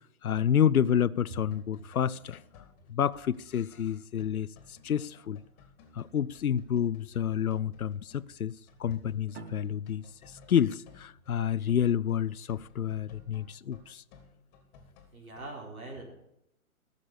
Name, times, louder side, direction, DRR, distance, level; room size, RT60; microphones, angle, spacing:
voice 1, 0.2-2.4 2.9-5.4 5.9-14.0, left 9 dB, 75° left, 0.6 m, -29 dB
sound 1, 1.3-15.5, left 5 dB, 30° left, 2.2 m, -58 dB
sound 2, 9.3-12.5, right 6 dB, 50° right, 1.7 m, -52 dB
voice 2, 15.1-16.1, right 2 dB, 70° right, 4.2 m, -42 dB
13.5 x 6.8 x 7.2 m
figure-of-eight pair, 120°, 43 cm